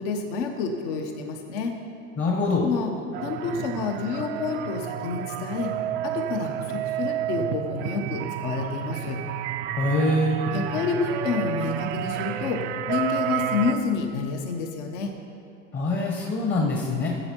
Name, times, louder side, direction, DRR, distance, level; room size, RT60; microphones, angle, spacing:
voice 1, 0.0-1.8 2.6-2.9 3.2-5.7 6.0-9.2 10.5-15.1, left 5 dB, 55° left, 4 dB, 1.2 m, -29 dB
voice 2, 2.2-2.7 9.8-10.4 15.7-17.1, left 2 dB, 25° left, 0 dB, 1.2 m, -24 dB
sound 1, 3.1-13.7, right 10 dB, 25° right, 0.4 m, -30 dB
14.5 x 7.8 x 4.6 m, 2.6 s
hypercardioid pair, 120°, 43 cm